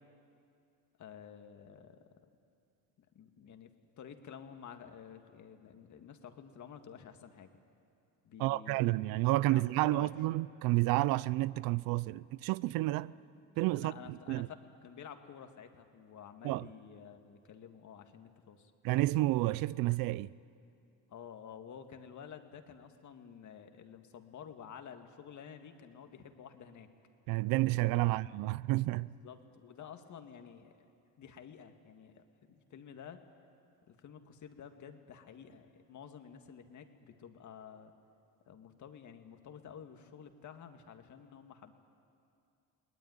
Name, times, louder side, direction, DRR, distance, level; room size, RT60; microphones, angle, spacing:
voice 1, 1.0-2.0 3.0-7.5 8.2-9.1 9.4-10.1 13.7-14.5 14.8-18.7 21.1-26.9 27.9-28.2 29.2-30.9 31.2-33.2 33.9-37.9 38.5-41.7, left 7 dB, 55° left, 2.1 m, -51 dB
voice 2, 8.4-13.1 13.6-14.5 16.4-16.7 18.8-20.3 27.3-29.1, right 19 dB, 75° right, 0.6 m, -30 dB
22.5 x 19.0 x 9.7 m
supercardioid pair, 80°, 35 cm